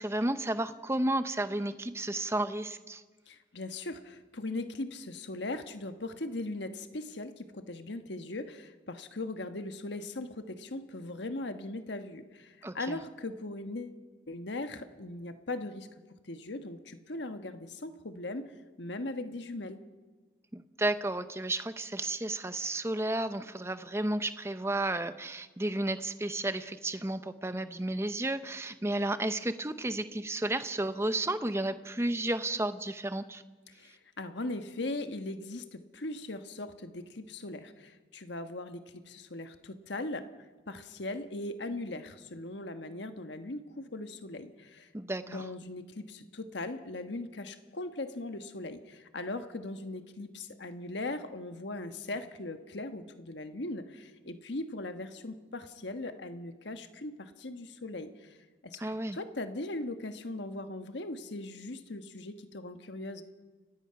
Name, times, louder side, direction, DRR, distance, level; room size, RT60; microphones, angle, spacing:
voice 1, 0.0-3.0 12.6-13.0 20.5-33.4 44.9-45.5 58.8-59.2, right 1 dB, 15° right, 11 dB, 0.7 m, -32 dB
voice 2, 3.3-14.0 14.3-15.9 16.3-18.4 18.8-19.8 33.8-40.2 40.7-44.9 45.3-58.4 58.6-58.8 59.1-63.2, left 2 dB, 75° left, 8 dB, 1.3 m, -39 dB
30.0 x 16.5 x 5.8 m, 1.4 s
head